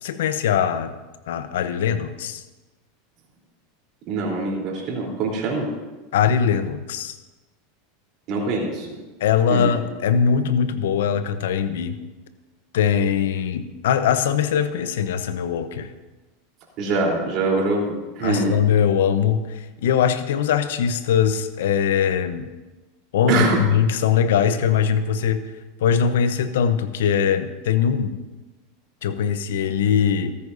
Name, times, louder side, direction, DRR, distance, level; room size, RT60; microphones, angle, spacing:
voice 1, 0.0-1.0 1.3-2.4 6.1-7.2 9.2-12.0 12.7-15.9 18.2-22.5 23.1-25.5 25.8-28.1 29.0-30.3, left 7 dB, 75° left, 11 dB, 0.8 m, -21 dB
voice 2, 4.1-5.7 8.3-8.9 9.5-9.7 16.8-18.5 23.3-23.6, right 3 dB, 50° right, -1 dB, 3.5 m, -23 dB
14.0 x 14.0 x 2.7 m, 1.1 s
hypercardioid pair, 95°, 0 cm